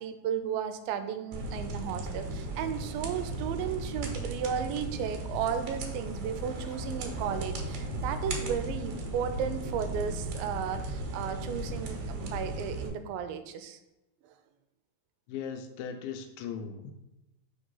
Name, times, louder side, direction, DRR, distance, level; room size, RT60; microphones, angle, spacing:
voice 1, 0.0-13.8, right 8 dB, 85° right, 9 dB, 2.3 m, -34 dB
sound 1, 1.3-12.9, right 2 dB, 65° right, 2.3 m, -36 dB
sound 2, 4.8-5.0 6.5-7.1 9.5-10.3, equal, 65° left, 1.3 m, -51 dB
voice 2, 15.3-16.9, left 7 dB, 90° left, 6 dB, 2.4 m, -38 dB
5.3 x 3.6 x 5.5 m, 0.95 s
omnidirectional pair, 4.2 m